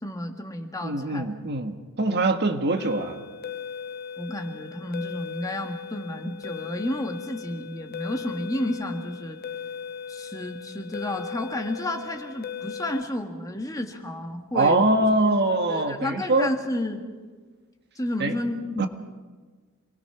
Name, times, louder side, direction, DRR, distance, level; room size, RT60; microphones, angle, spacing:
voice 1, 0.0-1.3 4.2-9.4 10.1-14.8 15.7-17.0 17.9-18.9, left 1 dB, 15° left, 4 dB, 1.7 m, -31 dB
voice 2, 0.8-3.2 14.5-16.5 18.2-18.3 18.8-18.9, right 2 dB, 50° right, 6 dB, 1.5 m, -23 dB
sound 1, 2.8-13.0, left 7 dB, 45° left, 0.7 m, -38 dB
27.0 x 20.0 x 5.9 m, 1.4 s
head